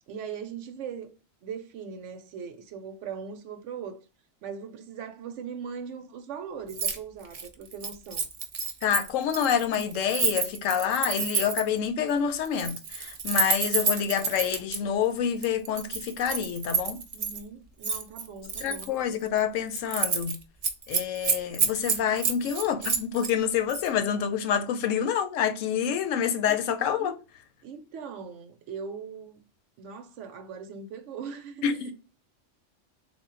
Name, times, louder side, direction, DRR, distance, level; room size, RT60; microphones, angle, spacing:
voice 1, 0.1-1.1 1.4-4.0 4.4-8.3 17.1-18.9 26.5-26.6 27.0-27.2 27.6-29.4 29.8-31.9, right 6 dB, 70° right, 0.9 m, -40 dB
Keys jangling, 6.7-7.0 7.2-11.8 12.4-14.8 15.4-17.4 17.8-18.9 19.3-19.4 19.7-20.3 20.6-23.3 23.7-23.9, right 5 dB, 55° right, 0.4 m, -29 dB
voice 2, 8.8-17.0 18.6-20.4 20.9-27.2 31.6-31.9, left 8 dB, 85° left, 1.0 m, -27 dB
3.6 x 2.2 x 3.6 m
omnidirectional pair, 1.3 m